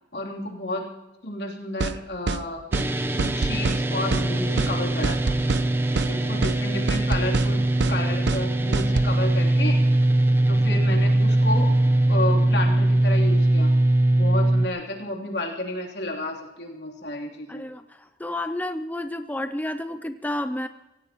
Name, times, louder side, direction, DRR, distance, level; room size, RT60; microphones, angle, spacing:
voice 1, 0.1-0.9 1.2-2.6 3.1-5.4 6.1-9.8 10.5-11.8 12.1-13.7 14.1-17.6, left 2 dB, 70° left, 0 dB, 3.2 m, -31 dB
sound 1, 1.8-2.0 2.3-2.4 2.7-2.9 3.2-3.8 4.1-4.3 4.6-4.7 5.0-5.7 6.0-6.1 6.4-6.6 6.9-7.5 7.8-8.0 8.3-8.4 8.7-9.1, right 4 dB, 80° right, 0.6 m, -26 dB
sound 2, 2.7-14.7, right 1 dB, 15° right, 0.8 m, -21 dB
voice 2, 17.5-20.7, left 1 dB, 10° left, 9 dB, 0.5 m, -31 dB
25.5 x 16.5 x 3.0 m, 1.0 s
head